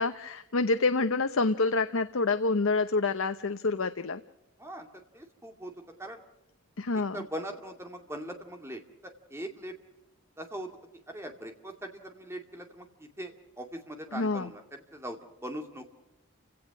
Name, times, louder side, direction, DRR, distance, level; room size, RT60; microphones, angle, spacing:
voice 1, 0.0-4.2 6.8-7.2 14.1-14.5, left 3 dB, 70° left, 10 dB, 0.8 m, -27 dB
voice 2, 4.6-5.7 6.0-6.2 7.1-9.7 10.4-10.7 11.1-15.9, right 1 dB, 10° right, 4 dB, 2.4 m, -41 dB
29.5 x 17.5 x 6.1 m, 0.91 s
head